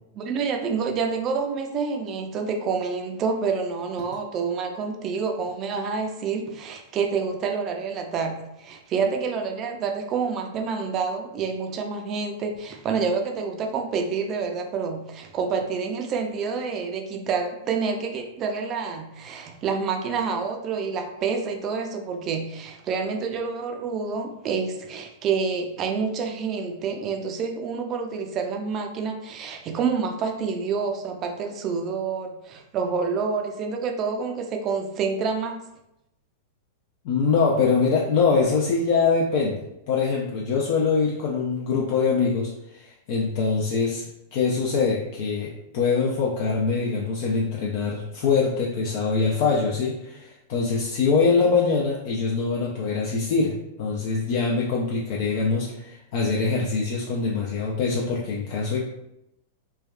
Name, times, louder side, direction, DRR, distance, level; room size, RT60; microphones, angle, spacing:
voice 1, 0.1-35.7, right 5 dB, 35° right, 4 dB, 0.4 m, -28 dB
voice 2, 37.0-58.8, left 4 dB, 60° left, -3 dB, 0.4 m, -24 dB
3.3 x 2.2 x 2.3 m, 0.86 s
hypercardioid pair, 115°, 0 cm